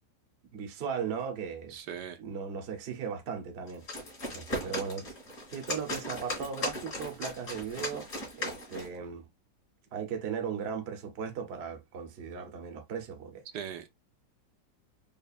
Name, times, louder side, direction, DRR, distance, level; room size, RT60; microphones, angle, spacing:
voice 1, 0.5-1.8 2.2-3.8 4.3-5.1 5.5-8.1 8.4-9.3 9.9-13.4, right 6 dB, 50° right, 0.8 m, -37 dB
voice 2, 1.7-2.2 4.5-4.7 13.5-13.9, right 9 dB, 75° right, 1.2 m, -40 dB
sound 1, 3.7-9.0, left 1 dB, 55° left, 2.3 m, -37 dB
5.2 x 2.4 x 2.3 m
omnidirectional pair, 1.9 m